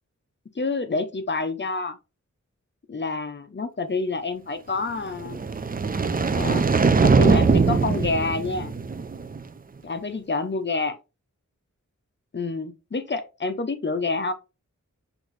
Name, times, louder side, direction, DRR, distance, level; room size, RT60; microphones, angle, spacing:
voice 1, 0.5-2.0 2.9-5.4 6.3-6.6 7.0-8.7 9.8-11.0 12.3-14.3, left 3 dB, 35° left, 0.6 m, -28 dB
sound 1, 5.2-9.4, right 4 dB, 30° right, 0.4 m, -21 dB
6.0 x 2.6 x 3.1 m
wide cardioid pair, 70°, 31 cm